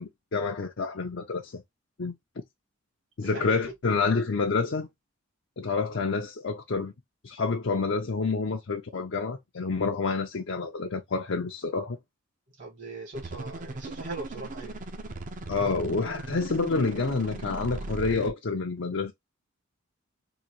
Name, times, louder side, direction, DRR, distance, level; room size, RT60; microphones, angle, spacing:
voice 1, 0.0-1.6 2.0-2.1 3.2-4.9 5.6-6.9 7.2-12.0 15.5-19.1, left 4 dB, 65° left, 0.6 m, -28 dB
voice 2, 3.2-3.5 3.9-4.0 12.6-14.8, right 3 dB, 60° right, 1.6 m, -40 dB
sound 1, 13.1-18.3, right 2 dB, 40° right, 0.6 m, -38 dB
3.9 x 2.7 x 2.9 m
head